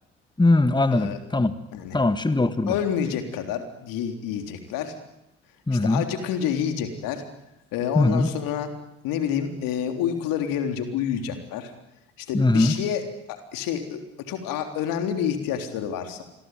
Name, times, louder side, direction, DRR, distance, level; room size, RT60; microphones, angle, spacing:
voice 1, 0.4-1.5 1.9-2.8 5.7-6.0 7.9-8.3 12.3-12.7, left 2 dB, 10° left, 12 dB, 1.7 m, -20 dB
voice 2, 2.7-5.0 5.7-7.2 7.7-8.7 9.0-11.7 12.2-13.0 13.3-16.2, left 8 dB, 70° left, 6 dB, 3.7 m, -28 dB
27.0 x 22.5 x 9.4 m, 0.86 s
hypercardioid pair, 50°, 35 cm